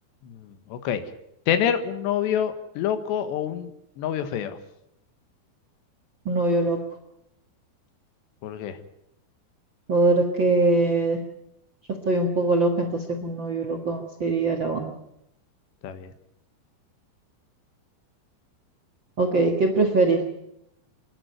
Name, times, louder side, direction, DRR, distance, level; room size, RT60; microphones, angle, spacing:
voice 1, 0.2-1.0 1.5-3.7 4.0-4.6 8.4-8.8 15.8-16.1, left 9 dB, 85° left, 10 dB, 3.6 m, -27 dB
voice 2, 6.2-6.8 9.9-11.2 12.0-14.9 19.2-20.2, right 3 dB, 50° right, 5 dB, 1.4 m, -22 dB
27.0 x 11.0 x 9.4 m, 0.80 s
omnidirectional pair, 4.9 m